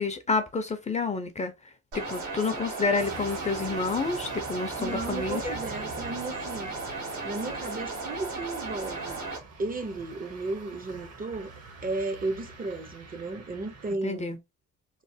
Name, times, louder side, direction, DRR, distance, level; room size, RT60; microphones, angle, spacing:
voice 1, 0.0-1.5 1.9-5.6 14.0-14.4, left 4 dB, 25° left, 0.5 m, -29 dB
sound 1, 1.9-9.4, right 3 dB, 85° right, 1.3 m, -35 dB
sound 2, 3.0-13.9, right 4 dB, 55° right, 0.9 m, -46 dB
voice 2, 4.8-6.7 7.2-9.2 9.6-11.5 11.8-14.3, right 3 dB, 30° right, 0.5 m, -34 dB
3.1 x 2.0 x 2.6 m
cardioid pair, 90°, 30 cm